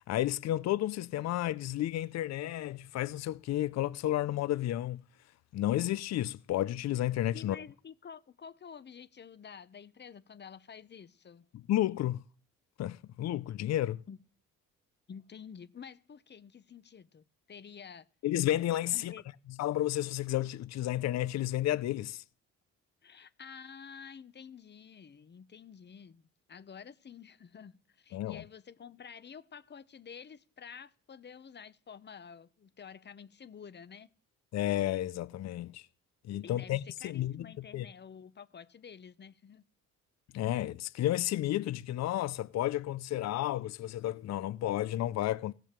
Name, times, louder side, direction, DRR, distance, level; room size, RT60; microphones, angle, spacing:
voice 1, 0.0-5.0 5.5-7.6 11.5-12.2 12.8-14.0 18.2-19.1 19.6-22.2 28.1-28.4 34.5-35.9 36.3-37.9 40.3-45.5, left 13 dB, 60° left, 0.5 m, -32 dB
voice 2, 7.3-11.5 14.1-14.2 15.1-18.1 18.9-19.2 23.0-34.1 36.4-39.6, left 7 dB, 35° left, 0.8 m, -50 dB
16.5 x 6.0 x 6.7 m
cardioid pair, 90°, 30 cm